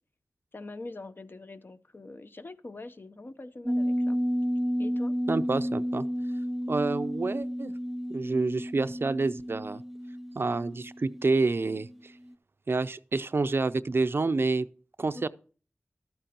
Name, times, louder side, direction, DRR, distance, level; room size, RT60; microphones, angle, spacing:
voice 1, 0.5-4.2 4.8-5.2 15.1-15.2, left 2 dB, 50° left, 0.7 m, -43 dB
sound 1, 3.6-11.9 12.3-12.4, equal, 5° right, 0.5 m, -31 dB
voice 2, 5.3-6.1 6.7-7.7 8.1-9.8 10.4-12.1 12.7-14.7 15.0-15.3, right 3 dB, 55° right, 0.5 m, -28 dB
12.5 x 8.9 x 2.9 m
cardioid pair, 45°, 5 cm